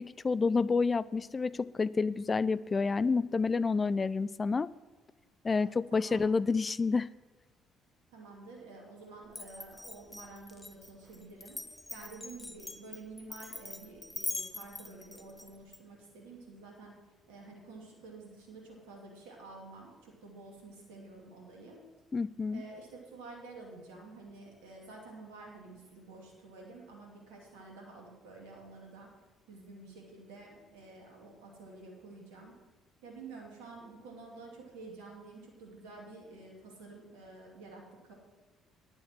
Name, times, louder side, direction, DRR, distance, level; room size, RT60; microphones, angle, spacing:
voice 1, 0.0-4.7 5.4-7.1 22.1-22.6, left 4 dB, 30° left, 18 dB, 0.3 m, -29 dB
voice 2, 5.6-6.4 8.1-11.6 11.9-16.9 17.3-21.8 22.5-29.1 29.5-32.5 33.0-38.1, right 3 dB, 70° right, -1 dB, 2.5 m, -50 dB
Glass, 9.3-15.8, left 2 dB, 15° left, 1.0 m, -42 dB
9.6 x 7.5 x 7.6 m, 1.3 s
figure-of-eight pair, 50°, 0 cm